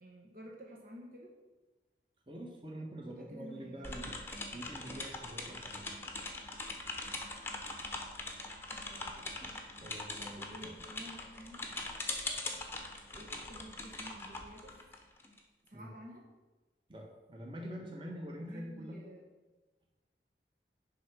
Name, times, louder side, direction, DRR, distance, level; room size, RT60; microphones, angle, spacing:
voice 1, 0.0-1.3 3.1-3.9 8.7-9.3 10.4-11.7 13.2-14.8 15.6-16.3 18.4-19.2, equal, 50° right, -1 dB, 1.1 m, -51 dB
voice 2, 2.3-4.1 4.5-5.9 9.7-10.7 15.7-15.9 16.9-19.0, equal, 30° right, 0 dB, 1.4 m, -45 dB
sound 1, 3.8-15.4, left 2 dB, 15° left, 0.9 m, -42 dB
10.0 x 3.7 x 6.1 m, 1.2 s
head